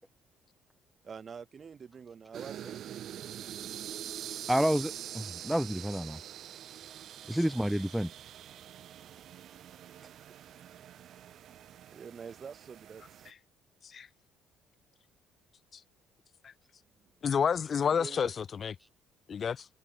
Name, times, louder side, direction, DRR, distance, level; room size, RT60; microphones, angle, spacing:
voice 1, 1.0-2.9 3.9-4.0 7.4-7.7 10.0-10.2 11.9-13.3 17.0-17.1 17.8-18.3, right 6 dB, 35° right, 4.1 m, -47 dB
sound 1, 2.3-13.3, right 11 dB, 60° right, 2.9 m, -45 dB
voice 2, 4.5-6.2 7.3-8.1, equal, ahead, 1.0 m, -29 dB
voice 3, 17.2-18.7 19.3-19.7, left 7 dB, 40° left, 0.8 m, -29 dB
cardioid pair, 105°, 0 cm